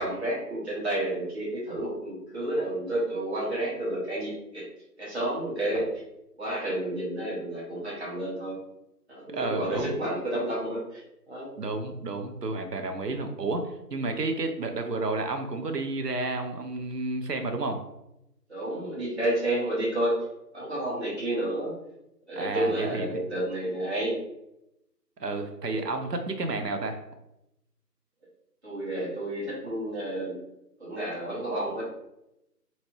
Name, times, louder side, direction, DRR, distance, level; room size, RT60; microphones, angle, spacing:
voice 1, 0.0-4.6 5.0-5.9 6.4-8.6 9.1-11.0 11.3-11.5 18.5-20.2 20.5-21.8 22.3-24.2 28.6-30.4 30.8-31.8, right 1 dB, 40° right, -8 dB, 1.2 m, -30 dB
voice 2, 9.3-9.9 11.6-17.8 22.3-23.2 25.2-27.0, right 3 dB, 75° right, 5 dB, 0.7 m, -31 dB
3.0 x 2.9 x 2.7 m, 0.87 s
figure-of-eight pair, 165°, 49 cm